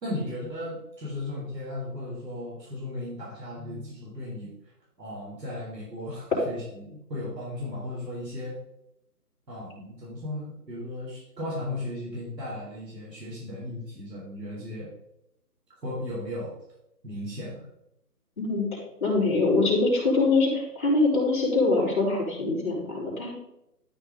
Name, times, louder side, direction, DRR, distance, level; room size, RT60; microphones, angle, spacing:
voice 1, 0.0-4.5 5.0-8.6 9.5-14.9 15.8-16.5 17.0-17.7, left 1 dB, 80° right, -6 dB, 3.9 m, -36 dB
voice 2, 18.4-23.3, left 3 dB, 30° left, -6 dB, 3.6 m, -24 dB
12.5 x 5.6 x 3.9 m, 0.85 s
figure-of-eight pair, 170°, 49 cm